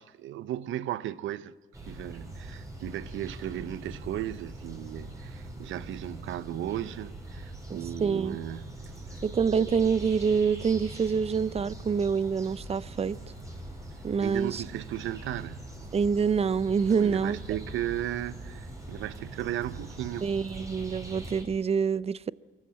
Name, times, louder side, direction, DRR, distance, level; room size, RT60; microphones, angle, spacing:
voice 1, 0.0-1.5 1.8-8.7 14.2-15.7 16.9-20.3, right 12 dB, 80° right, 0.8 m, -35 dB
sound 1, 1.7-21.4, right 1 dB, 15° right, 5.6 m, -42 dB
voice 2, 8.0-8.4 9.2-13.2 14.0-14.6 15.9-17.4 20.2-22.3, right 6 dB, 30° right, 0.5 m, -26 dB
23.5 x 14.0 x 8.8 m
cardioid pair, 90°, 20 cm